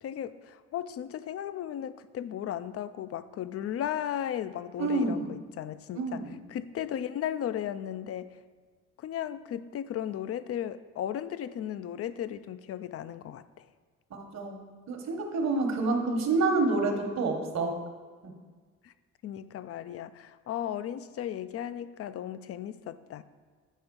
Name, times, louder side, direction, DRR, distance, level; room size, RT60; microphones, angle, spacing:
voice 1, 0.0-8.3 9.0-13.7 18.8-18.9 19.2-23.2, left 10 dB, 50° left, 14 dB, 0.4 m, -36 dB
voice 2, 4.8-5.3 5.9-6.4 14.1-17.7 18.2-18.3, right 3 dB, 60° right, 4 dB, 1.2 m, -28 dB
8.5 x 3.5 x 5.2 m, 1.5 s
cardioid pair, 90°, 30 cm